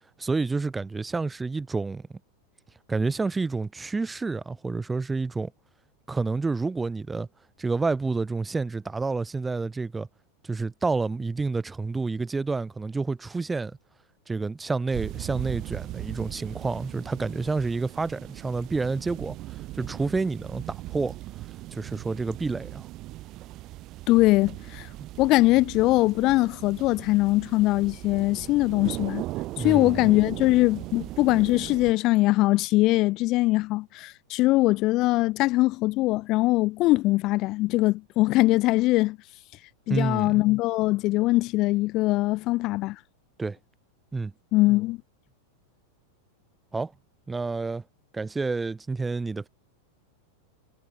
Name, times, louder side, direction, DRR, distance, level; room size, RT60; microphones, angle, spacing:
voice 1, 0.2-2.0 2.9-5.5 6.1-7.3 7.6-10.1 10.4-13.8 14.3-21.2 21.7-22.9 29.6-30.1 39.9-40.4 43.4-43.6 44.1-44.3 46.7-46.9 47.3-47.8 48.1-49.5, right 3 dB, 10° right, 0.6 m, -29 dB
sound 1, 14.9-31.9, right 17 dB, 35° right, 2.2 m, -38 dB
voice 2, 24.1-24.9 25.2-29.2 29.6-39.2 39.9-43.0 44.5-45.0, left 19 dB, 40° left, 0.3 m, -22 dB
figure-of-eight pair, 90°, 0 cm